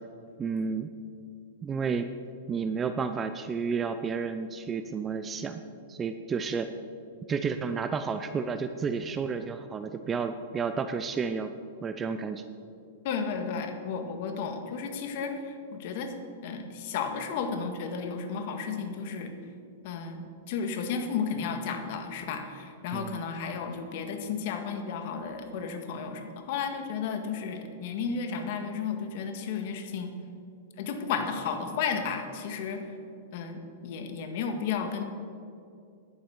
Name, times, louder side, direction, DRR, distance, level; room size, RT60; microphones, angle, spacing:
voice 1, 0.4-0.9 1.6-2.1 2.5-5.6 5.9-6.7 7.3-11.5 11.8-12.4 22.9-23.2, right 5 dB, 20° right, 9 dB, 0.5 m, -31 dB
voice 2, 13.0-16.1 16.4-19.3 19.8-30.1 30.8-32.8 33.3-35.0, left 6 dB, 55° left, 5 dB, 1.7 m, -33 dB
11.0 x 9.6 x 7.0 m, 2.4 s
hypercardioid pair, 140°, 0 cm